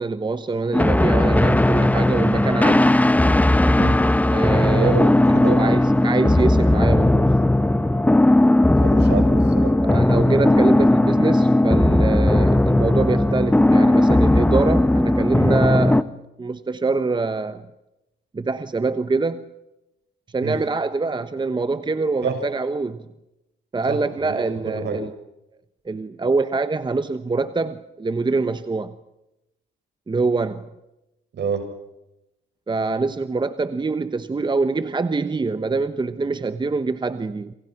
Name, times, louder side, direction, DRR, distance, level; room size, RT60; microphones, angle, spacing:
voice 1, 0.0-3.0 4.3-5.1 5.5-7.3 9.8-17.7 18.3-19.4 20.3-23.1 23.7-25.1 25.8-29.0 30.1-30.7 32.7-37.5, right 3 dB, 25° right, 1.1 m, -24 dB
sound 1, 0.7-16.0, left 1 dB, 10° left, 1.0 m, -17 dB
voice 2, 4.8-5.6 8.8-9.7 20.4-20.6 22.2-22.4 23.9-25.0 31.3-31.6, right 5 dB, 60° right, 6.6 m, -27 dB
27.5 x 25.5 x 6.0 m
cardioid pair, 90°, 20 cm